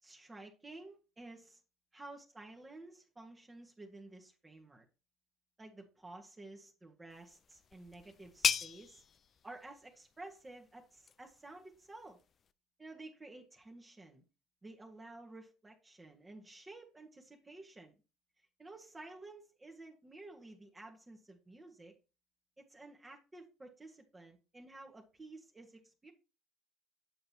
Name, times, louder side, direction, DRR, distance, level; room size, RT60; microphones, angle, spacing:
voice 1, 0.0-1.6 1.9-4.8 5.6-9.0 9.4-12.2 12.8-14.2 14.6-17.9 18.4-21.9 22.7-26.1, right 2 dB, 20° right, 1.6 m, -52 dB
sound 1, 7.1-12.5, left 7 dB, 45° left, 0.5 m, -40 dB
8.8 x 6.7 x 2.9 m
hypercardioid pair, 65°, 0 cm